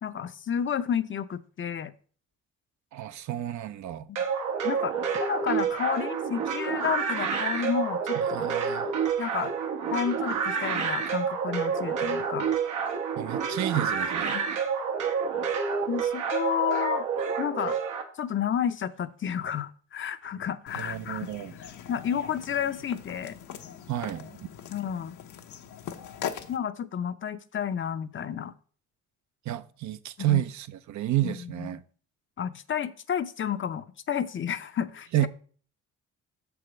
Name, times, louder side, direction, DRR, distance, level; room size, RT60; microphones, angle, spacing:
voice 1, 0.0-1.9 4.1-4.2 4.6-8.5 9.2-9.5 9.9-12.5 14.3-14.4 15.9-17.0 17.4-17.8 18.1-21.3 21.9-23.4 24.7-25.2 26.5-28.5 30.2-30.4 31.2-31.8 32.4-35.3, left 8 dB, 40° left, 0.6 m, -31 dB
voice 2, 2.9-4.1 8.2-8.9 13.2-14.4 20.8-21.5 23.9-24.5 29.5-31.8 35.1-35.3, right 13 dB, 70° right, 0.6 m, -30 dB
sound 1, 4.2-18.0, right 6 dB, 90° right, 1.4 m, -29 dB
sound 2, 20.7-26.6, left 9 dB, 75° left, 0.9 m, -41 dB
6.6 x 4.8 x 6.1 m
cardioid pair, 90°, 30 cm